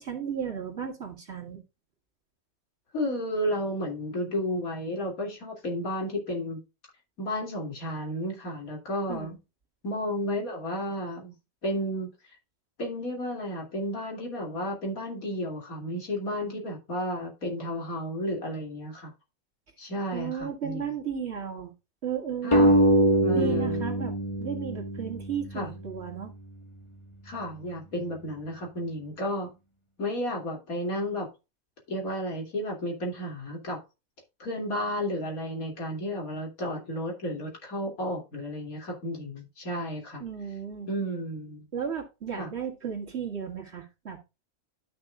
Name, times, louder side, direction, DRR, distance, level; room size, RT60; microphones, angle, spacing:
voice 1, 0.0-1.6 9.1-9.4 20.1-21.7 22.0-22.7 23.3-26.3 40.2-40.9 41.7-44.2, right 7 dB, 50° right, 2.4 m, -34 dB
voice 2, 2.9-6.6 7.2-9.4 9.8-11.3 11.6-12.1 12.8-19.1 19.8-20.8 22.4-22.8 23.2-23.9 25.5-25.7 27.2-29.5 30.0-31.3 31.9-33.8 34.4-40.2 40.9-41.7 42.4-42.5, equal, 90° left, 3.1 m, -32 dB
sound 1, 22.5-25.7, right 1 dB, 20° left, 1.4 m, -23 dB
12.0 x 5.9 x 2.4 m
omnidirectional pair, 1.4 m